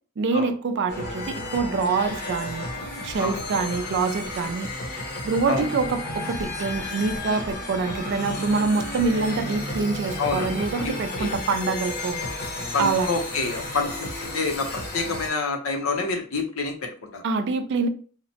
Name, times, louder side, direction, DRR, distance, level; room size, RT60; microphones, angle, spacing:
voice 1, 0.2-2.7 3.0-4.7 5.2-12.2 12.8-13.1 17.2-17.9, right 4 dB, 60° right, 0.3 m, -25 dB
sound 1, 0.9-15.3, left 1 dB, 50° left, 0.8 m, -33 dB
voice 2, 10.2-10.5 10.8-10.9 11.2-11.3 12.7-17.2, left 4 dB, 90° left, 0.7 m, -28 dB
2.8 x 2.1 x 2.7 m
head